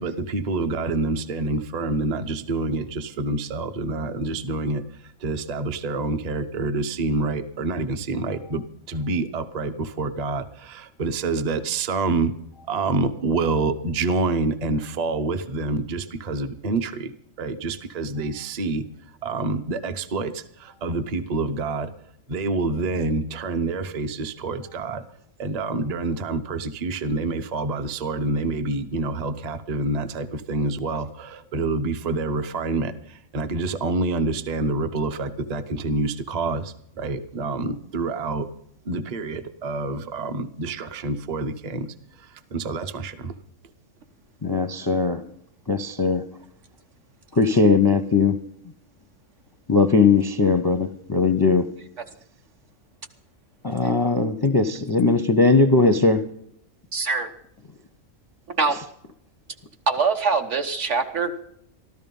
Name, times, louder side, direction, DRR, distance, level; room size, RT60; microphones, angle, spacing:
voice 1, 0.0-12.3 12.7-17.1 17.4-18.9 19.2-21.9 22.3-25.0 25.4-38.5 38.8-43.3, right 3 dB, 35° right, 11 dB, 0.8 m, -27 dB
voice 2, 44.4-45.2 45.7-46.2 47.3-48.4 49.7-51.7 53.6-56.2, left 4 dB, 25° left, 11 dB, 0.5 m, -19 dB
voice 3, 56.9-57.3 58.5-58.8 59.9-61.3, right 4 dB, 60° right, 5 dB, 1.5 m, -23 dB
13.5 x 13.0 x 5.3 m, 0.70 s
omnidirectional pair, 1.4 m